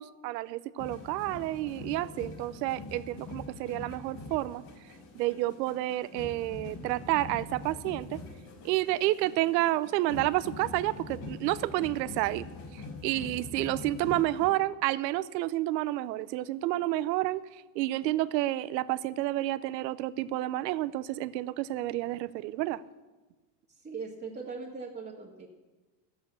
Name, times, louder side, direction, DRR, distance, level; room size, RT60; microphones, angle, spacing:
voice 1, 0.0-4.6 5.1-8.2 8.6-12.5 12.7-22.8, right 16 dB, 85° right, 17 dB, 0.8 m, -30 dB
sound 1, 0.8-14.5, left 3 dB, 65° left, 3.9 m, -44 dB
voice 2, 23.7-25.5, right 4 dB, 20° right, -4 dB, 1.8 m, -40 dB
12.5 x 8.6 x 8.2 m, 1.2 s
supercardioid pair, 120°, 49 cm